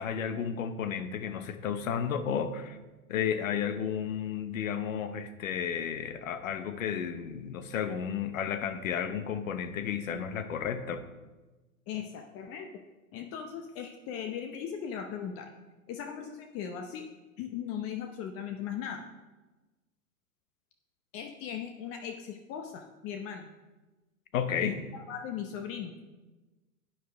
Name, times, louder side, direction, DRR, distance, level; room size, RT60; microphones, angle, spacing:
voice 1, 0.0-2.8 3.1-11.0 24.3-24.8, left 8 dB, 65° left, 10 dB, 1.0 m, -32 dB
voice 2, 11.9-12.7 13.1-15.5 15.9-17.0 17.4-19.0 21.1-23.5 24.6-24.7 25.1-25.9, left 8 dB, 35° left, 5 dB, 0.8 m, -38 dB
11.0 x 9.0 x 3.5 m, 1.2 s
figure-of-eight pair, 100°, 42 cm